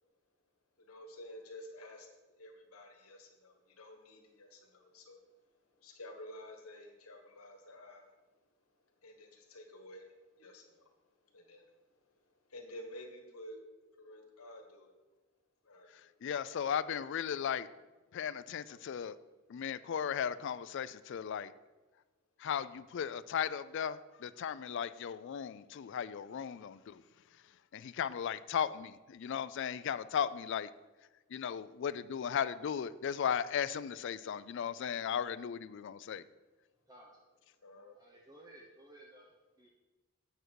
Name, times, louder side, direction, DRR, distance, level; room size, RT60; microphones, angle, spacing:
voice 1, 0.8-5.2 5.8-8.1 9.0-10.9 11.3-11.7 12.5-13.6 14.0-14.9 15.6-16.1 37.6-37.9, left 1 dB, 90° left, 3 dB, 1.5 m, -51 dB
voice 2, 16.2-17.7 18.1-19.2 19.5-21.5 22.4-27.0 27.7-30.7 31.3-36.2, left 8 dB, 55° left, 15 dB, 0.3 m, -36 dB
voice 3, 36.9-37.2 37.9-39.7, right 1 dB, 15° right, -2 dB, 0.8 m, -57 dB
8.6 x 6.5 x 4.6 m, 1.2 s
head